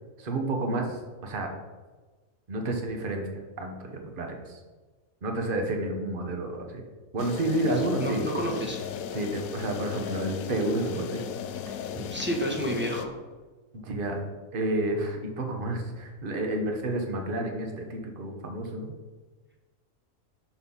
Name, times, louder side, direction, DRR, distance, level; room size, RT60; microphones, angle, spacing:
voice 1, 0.2-1.5 2.5-4.6 5.2-6.8 7.1-8.3 9.1-11.2 11.7-11.8 13.7-14.2 14.5-18.9, right 1 dB, 40° right, 3 dB, 1.1 m, -30 dB
sound 1, 7.2-13.1, left 8 dB, 80° left, 1.0 m, -37 dB
voice 2, 7.6-8.8 11.9-13.1, equal, 10° right, -1 dB, 1.0 m, -30 dB
6.4 x 4.3 x 5.5 m, 1.3 s
omnidirectional pair, 1.5 m